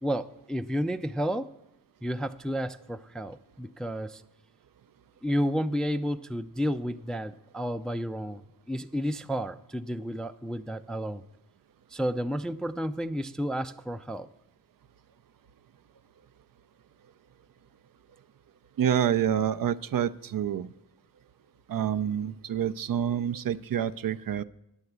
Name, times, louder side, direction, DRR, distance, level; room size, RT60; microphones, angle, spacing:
voice 1, 0.0-1.5 2.0-4.2 5.2-11.2 11.9-14.3, equal, ahead, 10 dB, 0.4 m, -31 dB
voice 2, 18.8-20.7 21.7-24.4, right 9 dB, 55° right, 13 dB, 0.5 m, -27 dB
9.7 x 7.3 x 8.0 m, 0.84 s
cardioid pair, 60°, 40 cm